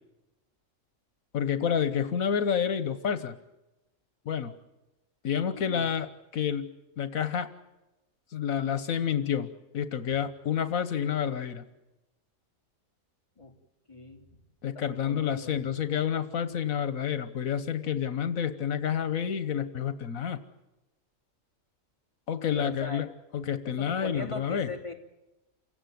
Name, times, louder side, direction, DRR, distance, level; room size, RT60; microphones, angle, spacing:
voice 1, 1.3-3.4 4.2-4.5 5.2-7.5 8.3-11.6 14.6-20.4 22.3-23.1 23.3-24.7, left 8 dB, 85° left, 11 dB, 1.6 m, -29 dB
voice 2, 5.5-5.9 13.4-13.5 13.9-14.2 14.7-15.6 22.5-23.0 23.6-24.9, left 3 dB, 20° left, 2 dB, 3.3 m, -40 dB
29.0 x 17.5 x 9.6 m, 0.98 s
omnidirectional pair, 1.4 m